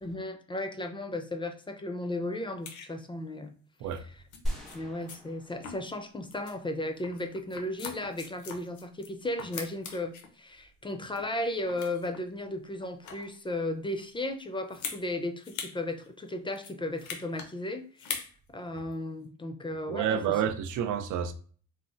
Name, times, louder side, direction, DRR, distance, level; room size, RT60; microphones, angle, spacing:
voice 1, 0.0-3.5 4.7-18.1 18.5-20.2, left 1 dB, 15° left, 0.4 m, -35 dB
sound 1, 2.7-2.9 3.9-4.0 4.3-4.4 4.7-4.8 5.1-5.2 5.6-6.0 6.3-6.5 7.0-9.1 9.4-10.3 10.8-11.4 11.7-12.2 12.8-13.4 14.7-15.0 15.4-15.8 16.0-16.1 16.5-17.5 18.0-18.3 18.8-18.9, left 6 dB, 75° left, 0.7 m, -41 dB
sound 2, 4.4-6.7, equal, ahead, 1.0 m, -38 dB
voice 2, 19.9-21.3, right 8 dB, 80° right, 0.5 m, -29 dB
4.0 x 2.0 x 2.5 m
cardioid pair, 90°, 30 cm